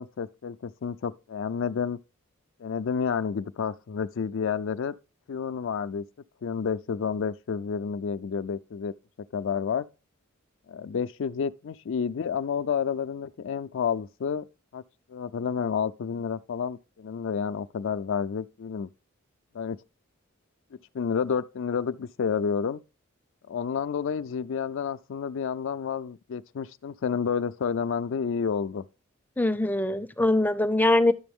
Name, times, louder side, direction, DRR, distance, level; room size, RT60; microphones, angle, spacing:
voice 1, 0.0-2.0 2.6-4.9 5.3-6.0 6.4-8.9 9.3-9.9 10.7-14.4 14.7-14.8 15.1-18.9 19.5-19.8 20.9-22.8 23.5-28.8, left 6 dB, 65° left, 0.4 m, -30 dB
voice 2, 29.4-31.1, left 2 dB, 10° left, 0.5 m, -22 dB
11.5 x 6.8 x 3.5 m
head